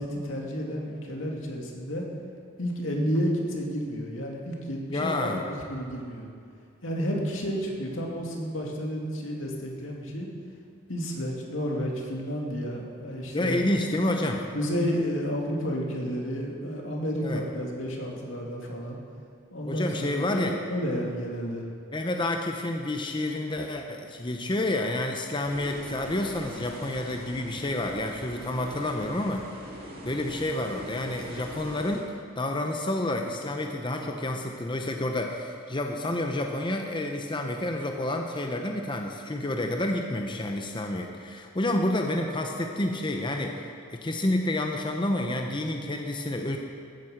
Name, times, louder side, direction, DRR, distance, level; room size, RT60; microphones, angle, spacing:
voice 1, 0.0-2.1 2.6-6.3 6.8-10.3 10.9-13.6 14.5-19.0 19.5-21.6, equal, 85° left, -1 dB, 2.4 m, -31 dB
voice 2, 4.9-5.4 13.3-14.4 17.2-17.4 19.6-20.6 21.9-29.5 30.0-46.6, left 1 dB, 25° left, 3 dB, 0.8 m, -29 dB
sound 1, 25.4-32.0, equal, 50° right, 2.4 m, -42 dB
14.5 x 9.1 x 6.6 m, 2.4 s
head